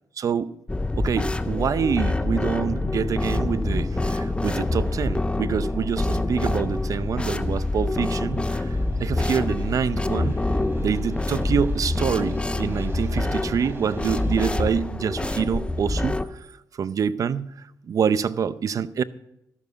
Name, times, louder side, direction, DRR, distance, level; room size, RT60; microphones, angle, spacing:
voice 1, 0.2-0.5 1.0-10.4 10.8-16.5 16.8-17.5 17.9-19.0, right 7 dB, 55° right, 0.6 m, -26 dB
sound 1, 0.7-16.3, left 2 dB, 15° left, 0.7 m, -26 dB
sound 2, 3.3-14.6, right 2 dB, 35° right, 2.9 m, -42 dB
13.0 x 7.0 x 6.8 m
supercardioid pair, 65°, 7 cm